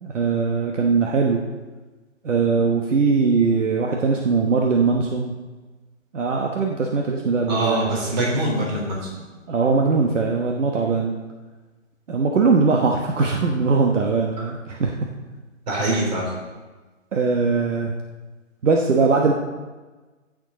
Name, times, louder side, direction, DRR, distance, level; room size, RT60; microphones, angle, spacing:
voice 1, 0.0-1.4 2.2-5.3 6.1-7.9 9.5-11.2 12.1-14.9 15.7-16.0 17.1-17.9 18.6-19.3, right 4 dB, 65° right, 1 dB, 1.2 m, -20 dB
voice 2, 7.5-9.2 15.7-16.3, right 1 dB, 30° right, -2 dB, 3.5 m, -23 dB
16.0 x 6.5 x 3.8 m, 1.3 s
hypercardioid pair, 160°, 40 cm